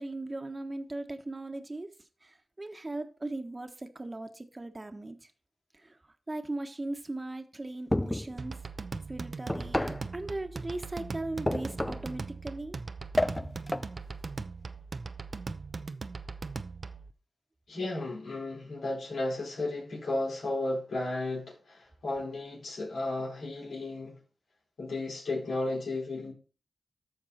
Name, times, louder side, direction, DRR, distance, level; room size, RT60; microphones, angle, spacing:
voice 1, 0.0-1.9 2.2-5.3 5.7-6.0 6.3-8.6 9.1-12.8, right 2 dB, 30° right, 1.4 m, -38 dB
sound 1, 7.9-8.4 9.5-10.1 11.5-12.1 13.2-13.9, left 1 dB, 20° left, 0.4 m, -30 dB
sound 2, 8.4-17.1, right 4 dB, 55° right, 0.7 m, -40 dB
voice 2, 17.7-24.2 24.8-26.3, left 2 dB, 85° left, 4.5 m, -34 dB
13.5 x 4.7 x 4.3 m
cardioid pair, 45°, 0 cm